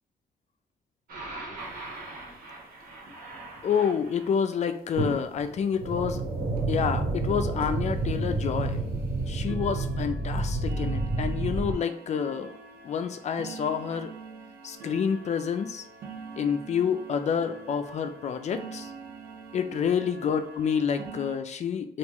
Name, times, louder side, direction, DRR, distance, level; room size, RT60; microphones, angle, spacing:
sound 1, 1.1-4.3 5.0-11.7, right 2 dB, 70° right, 1.3 m, -31 dB
sound 2, 1.6-1.7 2.0-2.1 2.3-2.5 2.8-3.1 3.9-4.0 4.5-4.6 5.0-5.1 5.5-5.6 6.1-6.2 6.6-6.8 7.2-7.3 7.6-21.3, right 4 dB, 85° right, 0.7 m, -45 dB
voice 1, 3.6-6.2 6.7-8.8 9.3-12.5 12.8-14.1 14.6-15.8 16.4-18.9 19.5-22.0, left 7 dB, 50° left, 8 dB, 0.5 m, -28 dB
3.5 x 2.5 x 3.0 m, 0.66 s
cardioid pair, 100°, 15 cm